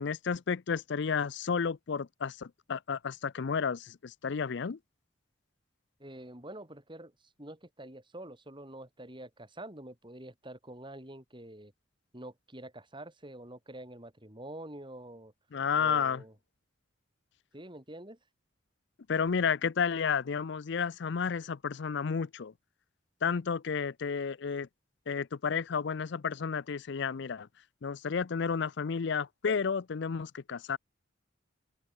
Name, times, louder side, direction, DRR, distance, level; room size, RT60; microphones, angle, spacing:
voice 1, 0.0-4.8 15.5-16.2 19.1-22.5 23.2-24.7 25.1-27.5 27.8-30.8, left 6 dB, 65° left, 0.5 m, -31 dB
voice 2, 6.0-11.7 12.1-15.3 15.7-16.3 17.5-18.2, right 1 dB, 25° right, 6.7 m, -47 dB
open air
head